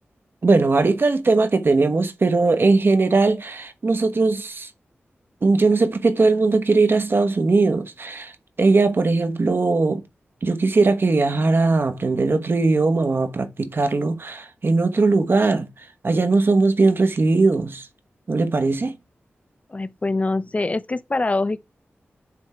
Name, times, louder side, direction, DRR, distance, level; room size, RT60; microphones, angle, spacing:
voice 1, 0.4-4.7 5.4-8.3 8.6-10.0 10.4-17.9 18.3-19.0, right 3 dB, 55° right, 1.1 m, -19 dB
voice 2, 19.7-21.6, left 2 dB, 30° left, 0.6 m, -24 dB
9.7 x 3.6 x 4.4 m
wide cardioid pair, 70°, 4 cm